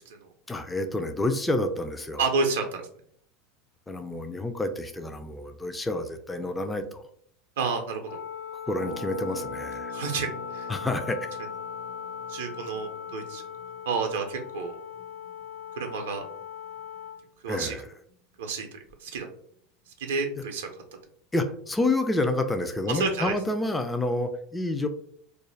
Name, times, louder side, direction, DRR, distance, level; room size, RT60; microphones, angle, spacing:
voice 1, 0.5-2.3 3.9-7.0 8.7-10.0 10.7-11.3 17.5-17.9 20.3-20.4 21.3-24.9, left 2 dB, 10° left, 7 dB, 0.3 m, -29 dB
voice 2, 2.2-2.8 7.6-8.0 9.9-10.3 10.5-10.7 12.3-13.4 13.9-14.8 15.8-16.2 17.4-17.7 18.4-18.7 19.0-19.3 20.0-20.7 22.9-23.3, right 4 dB, 75° right, 4 dB, 0.4 m, -29 dB
Wind instrument woodwind instrument, 8.0-17.2, left 8 dB, 55° left, 0.6 m, -39 dB
Harp, 8.7-18.4 18.6-18.7 18.9-19.2, right 1 dB, 80° left, 1.0 m, -47 dB
2.4 x 2.1 x 3.1 m, 0.62 s
hypercardioid pair, 85°, 0 cm